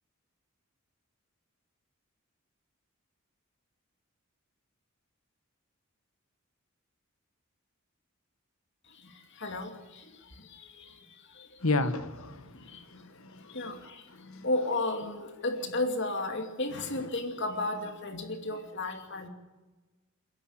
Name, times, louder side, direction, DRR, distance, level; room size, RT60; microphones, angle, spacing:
voice 1, 11.6-13.8 14.1-14.5, left 2 dB, 80° left, 1.6 m, -33 dB
voice 2, 14.4-19.3, left 2 dB, 55° left, 2.6 m, -32 dB
29.0 x 11.0 x 8.8 m
head